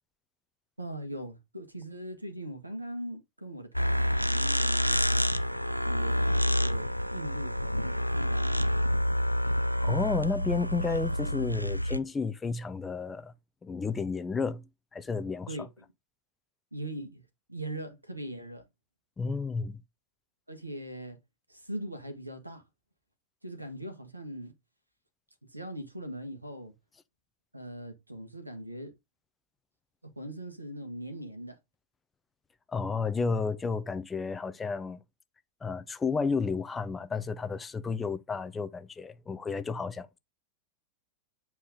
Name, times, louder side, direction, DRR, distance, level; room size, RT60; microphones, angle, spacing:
voice 1, 0.8-8.7 15.5-15.9 16.7-17.2 17.5-18.6 20.5-21.2 21.5-22.6 23.4-24.5 25.5-26.7 27.5-28.9 30.0-31.6, right 1 dB, 85° right, 2.0 m, -40 dB
sound 1, 3.7-12.0, equal, 90° left, 0.5 m, -28 dB
voice 2, 9.8-13.3 13.6-15.7 19.2-19.8 32.7-35.0 35.6-40.2, left 4 dB, 15° left, 0.8 m, -32 dB
8.6 x 4.6 x 3.8 m
figure-of-eight pair, 90°, 0 cm